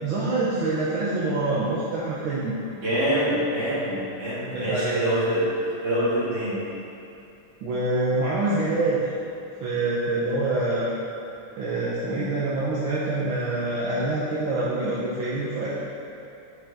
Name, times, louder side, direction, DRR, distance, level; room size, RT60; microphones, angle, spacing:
voice 1, 0.0-2.6 4.5-5.0 7.6-9.1 9.6-10.9 11.5-15.8, right 2 dB, 75° right, -8 dB, 1.9 m, -26 dB
voice 2, 2.8-5.5 5.8-6.6, equal, 50° right, -9 dB, 2.8 m, -25 dB
10.0 x 6.4 x 3.7 m, 2.8 s
omnidirectional pair, 2.3 m